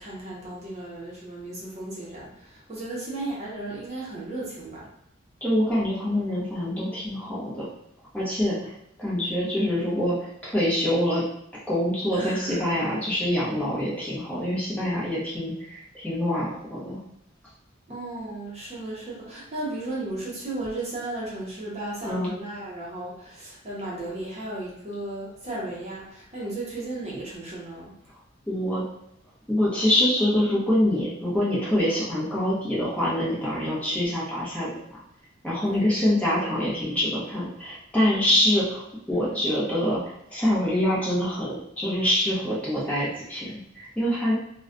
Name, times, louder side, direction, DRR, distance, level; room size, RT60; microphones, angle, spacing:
voice 1, 0.0-4.9 12.1-12.7 17.9-27.9 35.7-36.1 38.1-38.3 39.1-39.4, right 2 dB, 35° right, -5 dB, 0.7 m, -35 dB
voice 2, 5.4-7.7 8.1-8.7 9.0-10.2 10.4-11.2 11.7-17.0 22.0-22.3 28.5-28.8 29.5-34.7 35.4-38.8 39.1-40.0 40.3-44.3, left 1 dB, 5° left, -8 dB, 0.7 m, -25 dB
2.3 x 2.1 x 2.5 m, 0.77 s
head